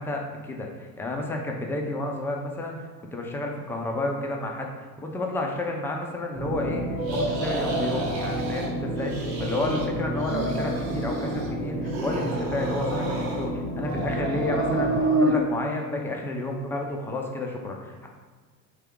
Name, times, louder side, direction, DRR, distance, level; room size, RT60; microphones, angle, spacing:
voice 1, 0.0-6.9 7.1-18.1, left 2 dB, 5° left, 0 dB, 0.4 m, -31 dB
sound 1, 6.3-15.0, right 1 dB, 15° right, 1.0 m, -31 dB
sound 2, 7.0-8.7 9.0-9.9 10.1-11.5 11.9-13.5 13.8-15.4, right 2 dB, 85° right, 0.8 m, -29 dB
3.5 x 2.8 x 3.5 m, 1.5 s
hypercardioid pair, 75°, 49 cm